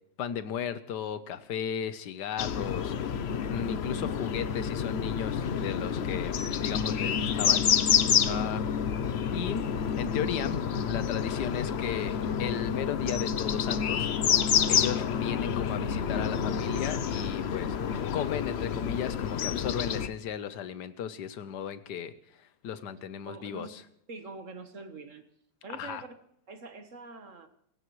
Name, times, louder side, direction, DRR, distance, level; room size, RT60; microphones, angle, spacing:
voice 1, 0.2-3.2 3.5-7.7 8.3-8.6 9.3-9.7 9.9-14.1 14.7-23.8 25.7-26.0, left 8 dB, 65° left, 12 dB, 1.5 m, -35 dB
sound 1, 2.4-20.1, left 7 dB, 80° left, 0.5 m, -28 dB
voice 2, 23.3-23.8 24.1-25.3 25.6-26.1 26.5-27.5, right 3 dB, 45° right, 8 dB, 1.5 m, -44 dB
26.0 x 16.0 x 3.2 m, 0.70 s
omnidirectional pair, 2.0 m